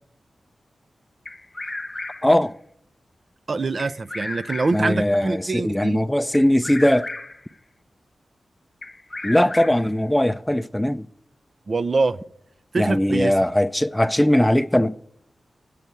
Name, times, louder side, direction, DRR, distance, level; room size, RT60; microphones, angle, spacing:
Bird vocalization bird call bird song, 1.2-2.4 3.8-5.0 6.3-7.5 8.8-10.0, left 2 dB, 30° left, 0.9 m, -34 dB
voice 1, 2.2-2.5 4.7-7.1 9.2-11.1 12.8-15.0, left 1 dB, 10° left, 0.4 m, -20 dB
voice 2, 3.5-6.0 11.7-12.2 12.7-13.3, right 3 dB, 60° right, 0.4 m, -24 dB
8.5 x 8.1 x 9.2 m
cardioid pair, 45°, 0 cm